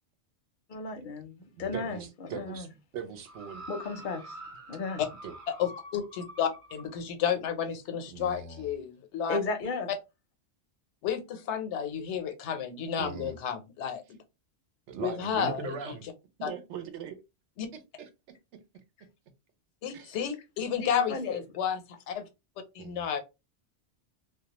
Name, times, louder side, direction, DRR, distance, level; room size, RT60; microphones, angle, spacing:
voice 1, 0.7-2.7 3.7-4.4 4.7-5.0 9.3-9.9 20.8-21.4, left 3 dB, 60° left, 0.6 m, -34 dB
voice 2, 1.6-2.7 2.9-3.6 5.2-5.3 8.1-8.7 13.0-13.3 14.9-16.1 16.4-17.2 17.7-18.1 19.9-20.1 22.8-23.0, right 6 dB, 85° right, 0.9 m, -40 dB
sound 1, 3.3-6.9 7.7-7.8, right 1 dB, 55° right, 0.7 m, -46 dB
voice 3, 5.6-9.4 11.0-14.0 15.0-15.7 16.4-16.5 17.6-17.7 19.8-21.8 22.1-22.2 22.7-23.2, left 8 dB, 85° left, 0.9 m, -31 dB
2.3 x 2.2 x 2.8 m
omnidirectional pair, 1.1 m